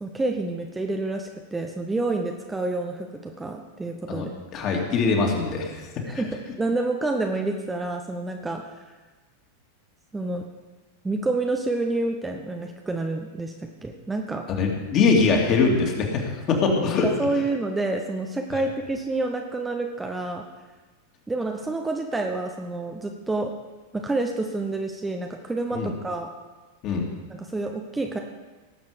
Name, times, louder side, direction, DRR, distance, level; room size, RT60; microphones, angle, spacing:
voice 1, 0.0-4.3 6.0-8.6 10.1-10.5 11.0-14.5 17.0-20.5 21.3-23.5 23.9-26.3 27.3-28.2, right 2 dB, 10° right, 3 dB, 0.9 m, -28 dB
voice 2, 4.5-5.9 6.1-6.2 14.6-17.1 18.5-18.6 25.7-25.9 26.8-27.1, left 4 dB, 35° left, 1 dB, 2.5 m, -22 dB
18.5 x 7.4 x 5.2 m, 1.3 s
figure-of-eight pair, 90°, 0 cm